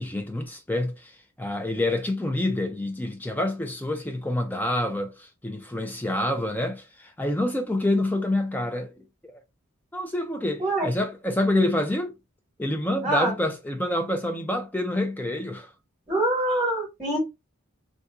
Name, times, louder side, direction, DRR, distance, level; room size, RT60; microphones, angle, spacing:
voice 1, 0.0-9.3 9.9-12.1 12.6-15.7, left 1 dB, 10° left, 0.4 m, -27 dB
voice 2, 13.0-13.3 16.1-17.2, right 1 dB, 5° right, 1.3 m, -24 dB
3.6 x 2.6 x 2.3 m
head